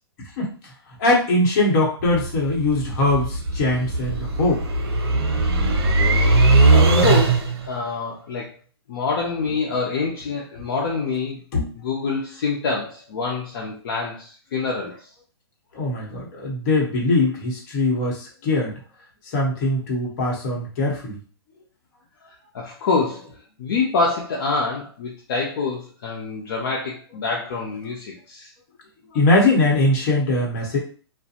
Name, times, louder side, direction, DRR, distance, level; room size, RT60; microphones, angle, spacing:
voice 1, 0.4-0.7 1.0-4.6 11.5-11.8 15.7-18.7 19.2-21.2 29.1-30.8, left 2 dB, 40° left, -2 dB, 1.0 m, -21 dB
sound 1, 2.0-7.7, right 2 dB, 70° right, 0.7 m, -19 dB
voice 2, 6.7-8.5 8.9-11.4 11.8-15.1 22.5-28.5, left 4 dB, 60° left, -2 dB, 0.6 m, -26 dB
2.4 x 2.1 x 2.8 m, 0.41 s
hypercardioid pair, 145°, 14 cm